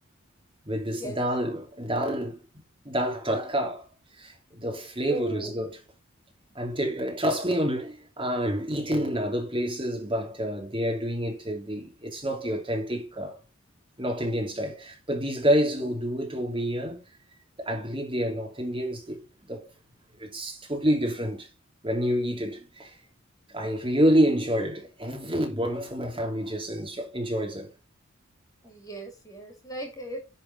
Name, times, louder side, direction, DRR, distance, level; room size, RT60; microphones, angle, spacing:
voice 1, 0.6-2.4 2.8-3.8 4.2-5.8 6.5-13.4 14.0-17.0 17.6-19.2 19.5-19.7 20.2-21.5 21.8-22.9 23.5-27.7, equal, 25° right, 3.0 m, -28 dB
voice 2, 5.1-5.6 28.6-30.2, right 1 dB, 15° left, 2.8 m, -37 dB
10.5 x 4.5 x 5.3 m
head